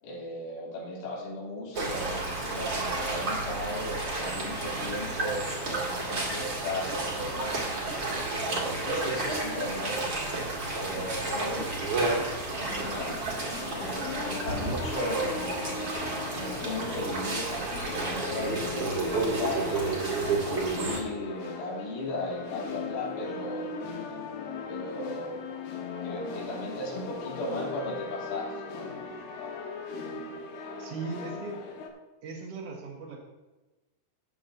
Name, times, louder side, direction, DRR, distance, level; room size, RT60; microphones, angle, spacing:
voice 1, 0.0-7.6 8.4-10.1 10.8-13.1 13.7-16.0 16.3-19.9 20.3-23.8 24.7-25.4 26.0-28.9, left 1 dB, 90° left, -6 dB, 5.8 m, -36 dB
sound 1, 1.7-21.0, right 3 dB, 45° right, 1.6 m, -31 dB
sound 2, 12.5-31.9, left 5 dB, 70° left, 2.9 m, -38 dB
voice 2, 30.8-31.6 32.2-33.2, right 4 dB, 65° right, -1 dB, 1.5 m, -38 dB
17.5 x 7.9 x 2.8 m, 1.1 s
omnidirectional pair, 5.4 m